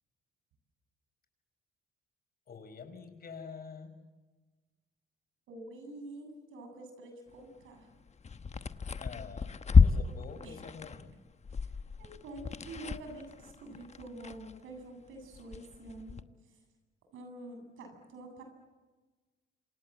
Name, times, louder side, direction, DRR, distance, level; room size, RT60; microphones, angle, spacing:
voice 1, 2.5-4.0 9.0-11.2, left 5 dB, 50° left, 8 dB, 5.3 m, -47 dB
voice 2, 5.5-7.9 10.4-10.5 12.0-16.6 17.1-18.4, right 2 dB, 85° right, 5 dB, 7.7 m, -47 dB
sound 1, 7.9-14.9 15.2-16.2, left 5 dB, 35° left, 1.1 m, -30 dB
27.5 x 27.5 x 7.7 m, 1.3 s
cardioid pair, 90°, 20 cm